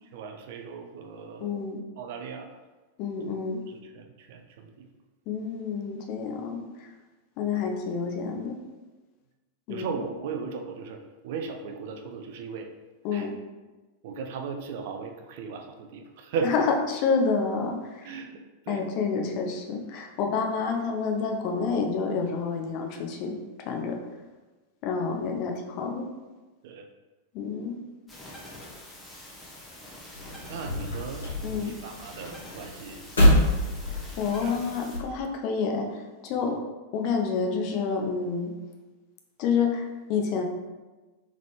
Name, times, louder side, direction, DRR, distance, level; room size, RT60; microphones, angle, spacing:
voice 1, 0.0-1.6 2.0-2.5 3.7-4.9 9.7-12.7 13.1-13.3 14.0-16.6 18.0-18.8 26.6-26.9 30.4-33.6 34.4-34.6 36.4-36.6, right 5 dB, 50° right, 4 dB, 0.4 m, -37 dB
voice 2, 1.4-1.8 3.0-3.6 5.3-6.9 7.4-8.6 9.7-9.9 13.0-13.3 16.5-18.1 18.7-23.3 23.6-24.0 24.8-26.0 27.3-27.8 31.4-31.7 34.2-36.6 36.9-38.5 39.4-40.4, left 5 dB, 45° left, 2 dB, 0.6 m, -28 dB
sound 1, 28.1-35.0, left 1 dB, 10° left, 1.1 m, -45 dB
sound 2, 30.1-35.2, equal, 70° left, 1.4 m, -26 dB
3.7 x 3.6 x 3.2 m, 1.2 s
figure-of-eight pair, 90°, 0 cm